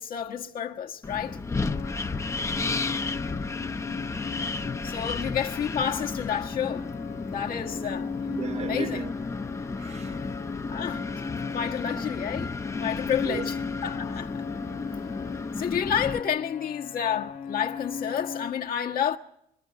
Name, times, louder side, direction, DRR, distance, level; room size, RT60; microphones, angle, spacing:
voice 1, 0.0-1.4 4.8-6.9 7.2-8.1 8.6-9.0 10.7-11.1 11.5-12.5 12.8-13.6 13.8-14.4 15.6-19.2, left 8 dB, 60° left, 1.5 m, -30 dB
Wind, 1.0-16.2, left 3 dB, 15° left, 0.9 m, -33 dB
sound 1, 1.7-18.5, left 6 dB, 45° left, 1.2 m, -37 dB
voice 2, 2.6-2.9 8.3-9.1 9.8-10.2 13.2-13.5 14.7-14.8, right 6 dB, 40° right, 1.0 m, -36 dB
25.5 x 13.5 x 9.3 m
cardioid pair, 110°, 17 cm